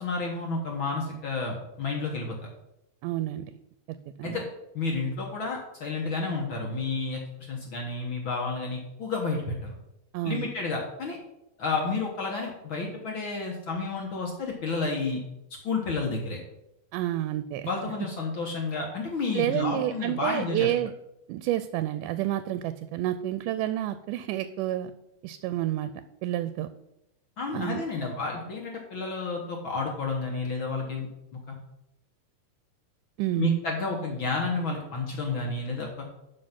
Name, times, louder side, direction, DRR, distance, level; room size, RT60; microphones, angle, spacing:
voice 1, 0.0-2.4 4.2-4.4 4.7-7.2 7.5-9.7 10.2-11.2 11.6-15.2 15.6-16.4 17.6-20.7 27.4-31.1 31.3-31.6 33.4-36.1, left 3 dB, 55° left, 0 dB, 1.5 m, -31 dB
voice 2, 3.0-3.5 4.2-4.4 10.1-10.5 16.9-17.7 19.3-20.9 21.3-24.9 25.2-25.9 26.2-26.7 27.5-27.8 33.2-33.6, right 13 dB, 85° right, 12 dB, 2.1 m, -29 dB
11.5 x 4.7 x 5.9 m, 0.87 s
omnidirectional pair, 3.7 m